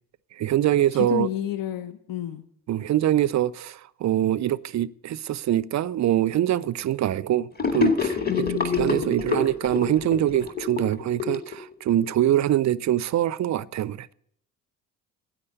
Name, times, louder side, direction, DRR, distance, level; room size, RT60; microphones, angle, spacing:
voice 1, 0.4-1.3 2.7-8.2 8.7-14.1, right 12 dB, 40° right, 0.5 m, -24 dB
voice 2, 0.9-2.4 8.3-9.1, left 12 dB, 50° left, 0.9 m, -30 dB
Gurgling / Sink (filling or washing), 7.6-12.1, left 5 dB, 20° left, 2.0 m, -27 dB
9.8 x 8.8 x 8.1 m
hypercardioid pair, 50°, 43 cm